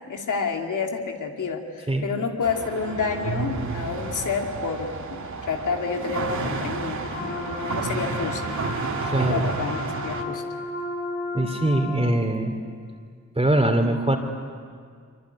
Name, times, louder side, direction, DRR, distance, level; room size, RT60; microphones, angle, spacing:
voice 1, 0.1-8.4 9.1-10.4, left 5 dB, 85° left, 3 dB, 2.6 m, -29 dB
sound 1, 2.4-10.2, right 4 dB, 70° right, 2.9 m, -31 dB
sound 2, 7.0-12.1, left 3 dB, 40° left, 4.7 m, -34 dB
voice 2, 9.0-9.5 11.3-12.6 13.3-14.2, right 1 dB, 20° right, 2 dB, 3.0 m, -22 dB
24.5 x 23.5 x 10.0 m, 2.1 s
cardioid pair, 60°, 30 cm